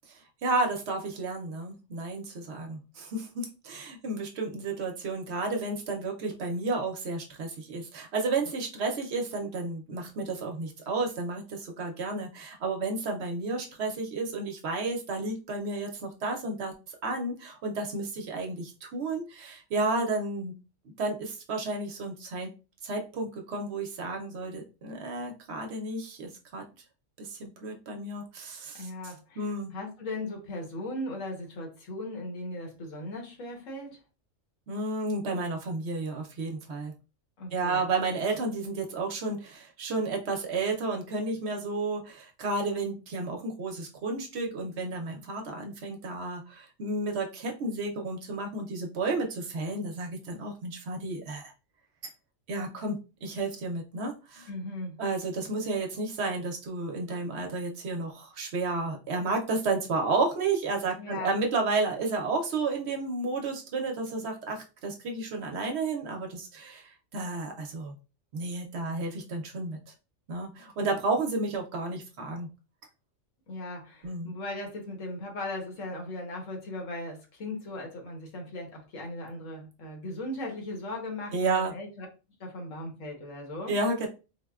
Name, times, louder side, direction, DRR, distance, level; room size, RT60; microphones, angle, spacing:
voice 1, 0.1-16.7 17.0-20.5 21.0-22.5 22.8-26.6 27.2-29.7 34.7-36.9 37.5-51.5 52.0-52.1 52.5-54.5 55.0-67.9 68.3-69.8 70.3-72.5 74.0-74.3 81.3-81.7 83.7-84.1, right 3 dB, 65° right, 2 dB, 0.8 m, -32 dB
voice 2, 28.7-34.0 37.4-37.9 54.5-55.0 61.0-61.3 73.5-82.1 82.4-83.7, left 1 dB, 80° left, 1 dB, 1.4 m, -38 dB
3.9 x 2.1 x 2.3 m, 0.31 s
omnidirectional pair, 1.3 m